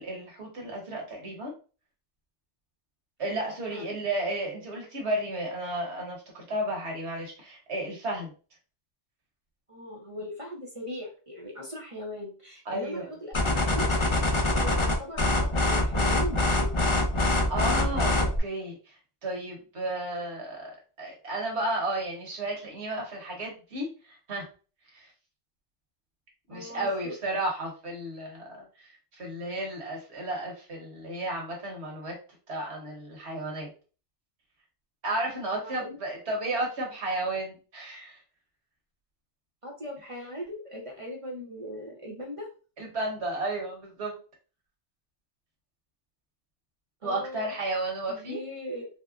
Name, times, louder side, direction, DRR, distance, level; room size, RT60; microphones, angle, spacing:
voice 1, 0.0-1.5 3.2-8.3 12.6-13.1 17.5-18.9 19.2-20.7 21.0-24.5 24.9-25.1 26.5-32.1 32.5-33.7 35.0-38.2 42.8-44.2 47.0-48.4, right 1 dB, 65° right, -1 dB, 1.4 m, -33 dB
voice 2, 9.7-13.9 14.5-16.7 26.5-27.1 35.5-36.0 39.6-42.5 47.0-47.5 48.1-48.9, equal, 35° right, -1 dB, 0.6 m, -39 dB
sound 1, 13.3-18.4, left 1 dB, 35° left, 0.5 m, -24 dB
4.1 x 2.1 x 2.4 m, 0.35 s
omnidirectional pair, 1.3 m